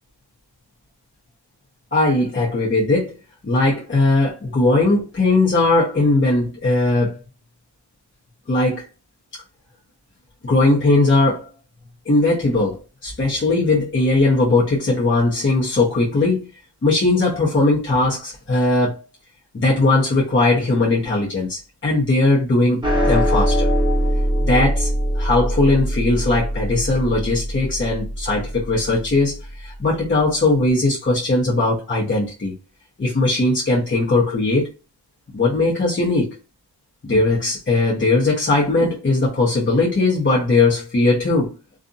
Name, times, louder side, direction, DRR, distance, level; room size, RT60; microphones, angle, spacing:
voice 1, 1.9-3.2 3.4-7.2 8.5-8.8 10.4-11.5 12.0-16.5 16.8-19.0 19.5-23.7 24.5-24.9 25.1-32.5 33.0-34.7 35.3-36.4 37.0-41.5, left 2 dB, 30° left, 0.9 m, -19 dB
sound 1, 22.8-29.4, equal, 10° right, 0.8 m, -22 dB
2.5 x 2.4 x 2.5 m
wide cardioid pair, 145°, 42 cm